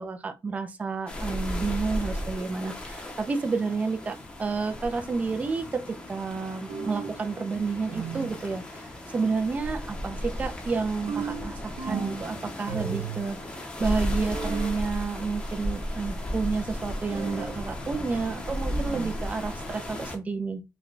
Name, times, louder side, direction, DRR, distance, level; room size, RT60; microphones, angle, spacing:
voice 1, 0.0-20.6, right 4 dB, 20° right, 0.3 m, -30 dB
sound 1, 1.1-20.2, equal, 15° left, 0.7 m, -35 dB
sound 2, 6.7-7.2 7.9-8.4 11.1-12.3 12.7-13.3 14.3-14.8 17.1-17.6 18.7-19.2, right 6 dB, 85° right, 0.8 m, -35 dB
3.3 x 2.1 x 3.9 m
wide cardioid pair, 170°, 7 cm